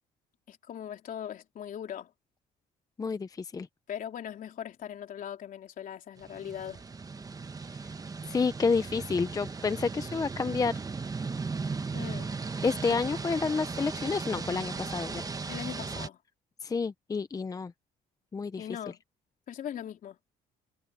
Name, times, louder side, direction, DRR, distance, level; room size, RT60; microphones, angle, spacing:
voice 1, 0.5-2.1 3.9-6.8 11.9-12.3 15.5-16.2 18.6-19.0 19.5-20.2, left 9 dB, 55° left, 3.6 m, -40 dB
voice 2, 3.0-3.7 8.3-10.7 12.6-15.2 16.6-17.7 18.3-18.8, left 4 dB, 20° left, 0.6 m, -29 dB
sound 1, 6.2-16.1, right 4 dB, 20° right, 1.1 m, -37 dB
cardioid pair, 110°, 17 cm